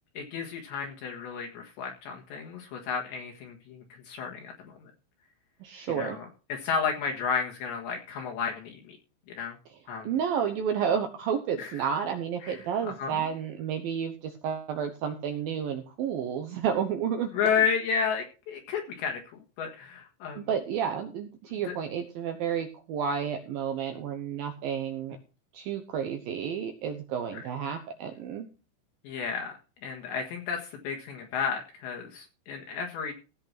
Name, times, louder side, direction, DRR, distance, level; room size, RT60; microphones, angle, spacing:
voice 1, 0.2-4.9 6.0-9.0 9.4-9.6 9.9-10.1 11.6-11.9 12.4-13.3 17.3-19.2 19.6-20.5 21.6-21.7 27.3-27.4 29.0-33.1, left 6 dB, 70° left, 1 dB, 3.7 m, -32 dB
voice 2, 5.6-6.2 10.0-17.6 20.4-25.2 25.5-28.5, right 7 dB, 80° right, 6 dB, 2.1 m, -31 dB
16.5 x 5.9 x 5.9 m, 0.34 s
omnidirectional pair, 5.6 m